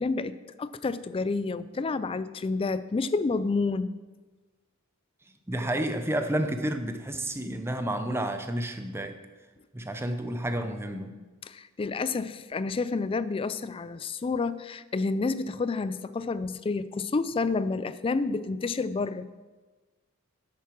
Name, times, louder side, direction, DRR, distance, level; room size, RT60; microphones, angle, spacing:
voice 1, 0.0-3.9 11.4-19.3, left 3 dB, 25° left, 15 dB, 0.3 m, -29 dB
voice 2, 5.5-9.1 9.7-11.2, right 1 dB, 10° right, 7 dB, 0.6 m, -30 dB
7.5 x 7.2 x 6.0 m, 1.3 s
head